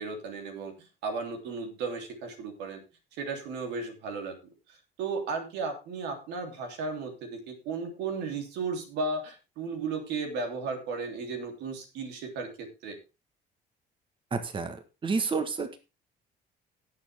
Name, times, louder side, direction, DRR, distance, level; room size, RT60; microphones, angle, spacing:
voice 1, 0.0-2.8 3.1-4.4 4.7-13.0, right 4 dB, 90° right, 4 dB, 3.2 m, -35 dB
voice 2, 14.3-15.8, right 4 dB, 30° right, 9 dB, 1.4 m, -30 dB
17.5 x 6.8 x 3.5 m, 0.28 s
cardioid pair, 110°, 17 cm